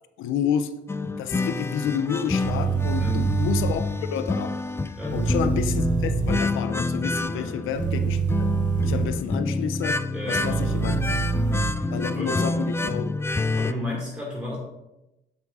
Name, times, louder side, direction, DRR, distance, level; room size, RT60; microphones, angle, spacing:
voice 1, 0.2-0.7 1.2-4.6 5.1-8.5 8.8-10.0 10.3-11.0 11.9-13.1, left 8 dB, 85° left, 11 dB, 0.5 m, -29 dB
sound 1, 0.9-13.7, left 3 dB, 15° left, 0.4 m, -28 dB
sound 2, 2.4-3.7 5.1-6.4 7.7-9.1 10.4-11.7, right 6 dB, 40° right, 0.7 m, -25 dB
voice 2, 2.9-3.3 5.0-5.3 7.3-7.7 10.1-10.9 12.1-12.4 13.6-14.6, left 1 dB, 5° right, -4 dB, 2.3 m, -33 dB
7.2 x 6.3 x 4.1 m, 0.94 s
cardioid pair, 90°, 20 cm